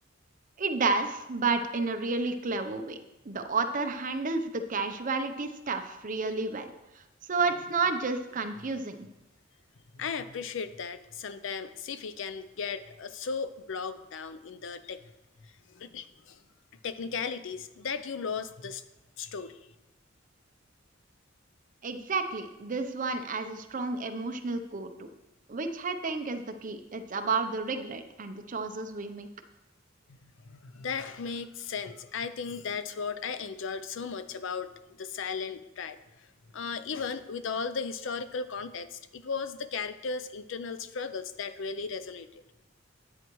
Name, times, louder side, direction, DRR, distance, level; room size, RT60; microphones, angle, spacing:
voice 1, 0.6-3.0 3.2-6.7 6.9-7.0 7.3-9.1 21.8-25.1 25.5-29.3, right 4 dB, 40° right, 7 dB, 0.7 m, -31 dB
voice 2, 9.9-15.0 15.7-16.4 16.8-18.8 19.2-19.6 30.4-36.0 36.5-42.4, left 5 dB, 70° left, 12 dB, 0.5 m, -36 dB
10.5 x 8.7 x 3.1 m, 0.97 s
head